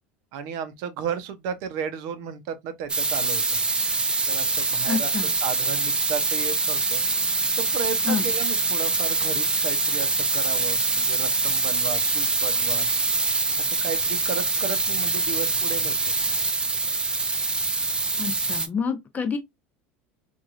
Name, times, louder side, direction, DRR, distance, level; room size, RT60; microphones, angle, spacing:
voice 1, 0.3-3.4 4.3-7.0 7.6-12.9 13.6-15.9, right 7 dB, 65° right, 0.7 m, -33 dB
sound 1, 2.9-18.7, right 3 dB, 15° right, 0.4 m, -24 dB
voice 2, 4.9-5.3 8.1-8.3 18.2-19.4, left 6 dB, 25° left, 0.7 m, -28 dB
3.0 x 2.5 x 2.5 m
supercardioid pair, 110°, 6 cm